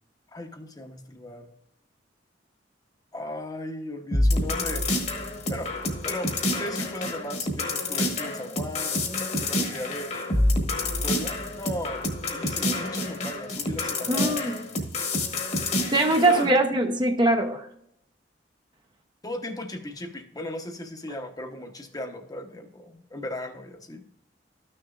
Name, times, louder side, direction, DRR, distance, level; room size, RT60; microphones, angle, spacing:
voice 1, 0.3-1.5 3.1-4.9 5.5-5.7 6.0-6.3 6.6-10.1 10.7-14.4 16.3-16.5 19.2-24.0, left 1 dB, 20° left, 0.9 m, -37 dB
sound 1, 4.1-16.5, left 1 dB, 40° left, 1.4 m, -28 dB
voice 2, 14.1-14.6 15.9-17.7, right 2 dB, 25° right, 0.7 m, -22 dB
13.0 x 6.5 x 2.5 m
head